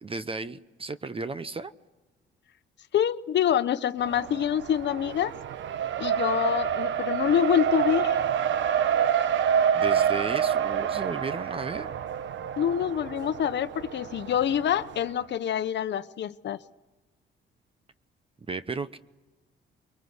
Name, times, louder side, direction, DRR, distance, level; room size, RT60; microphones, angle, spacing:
voice 1, 0.0-1.7 9.7-11.9 18.5-19.0, right 4 dB, 30° right, 13 dB, 0.9 m, -34 dB
voice 2, 2.9-5.3 6.0-8.2 12.6-16.6, left 9 dB, 65° left, 13 dB, 0.9 m, -26 dB
Race car auto racing, 4.0-15.0, right 8 dB, 70° right, 1.1 m, -28 dB
23.5 x 23.0 x 8.0 m, 1.1 s
cardioid pair, 90°, 20 cm